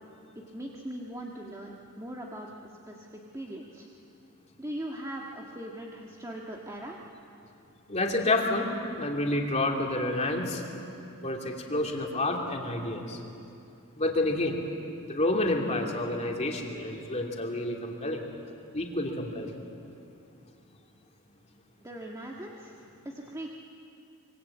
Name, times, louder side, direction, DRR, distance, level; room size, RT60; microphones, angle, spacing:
voice 1, 0.3-3.9 4.6-7.0 21.8-23.5, right 1 dB, 15° right, -2 dB, 1.6 m, -40 dB
voice 2, 7.9-10.6 11.2-13.2 14.0-14.6 15.0-18.2 18.7-19.5, left 2 dB, 30° left, 0 dB, 2.8 m, -29 dB
25.0 x 23.5 x 8.5 m, 2.7 s
head